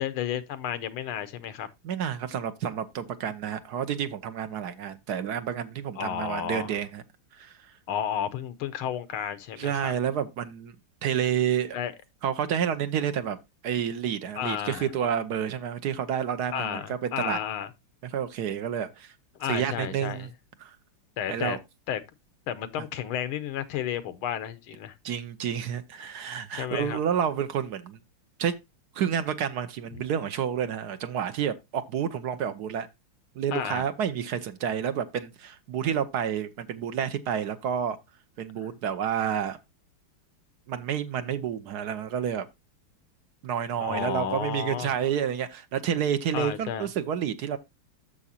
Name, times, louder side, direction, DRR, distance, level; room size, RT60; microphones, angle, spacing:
voice 1, 0.0-1.7 6.0-6.7 7.9-9.9 11.7-11.9 14.4-14.9 16.5-17.7 19.4-20.3 21.2-21.6 21.9-22.0 22.5-24.9 26.5-27.0 33.5-33.9 43.8-45.0 46.3-46.9, left 9 dB, 80° left, 1.6 m, -32 dB
voice 2, 1.8-7.0 7.3-7.6 9.1-9.2 9.6-10.7 11.0-11.8 12.2-13.4 13.6-17.4 18.1-19.1 19.5-20.3 20.6-20.8 21.3-21.6 25.0-28.0 28.4-28.5 28.9-32.9 33.4-38.0 38.4-39.6 40.7-42.5 43.4-47.6, right 8 dB, 65° right, 1.0 m, -29 dB
9.8 x 6.6 x 2.8 m
omnidirectional pair, 2.3 m